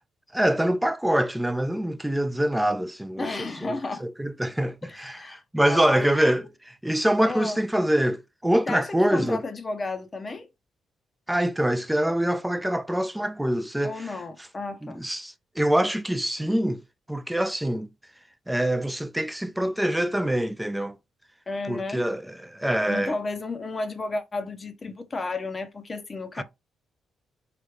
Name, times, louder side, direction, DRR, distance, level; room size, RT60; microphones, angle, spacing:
voice 1, 0.3-9.4 11.3-14.1 14.8-16.8 17.1-17.9 18.5-21.0 21.7-23.1 26.4-26.5, right 1 dB, 5° right, 0.4 m, -25 dB
voice 2, 3.2-4.0 4.8-6.3 7.2-7.6 8.7-10.5 13.8-15.0 21.5-22.1 22.9-26.4, left 3 dB, 30° left, 0.6 m, -33 dB
3.3 x 2.4 x 3.4 m
cardioid pair, 90°, 0 cm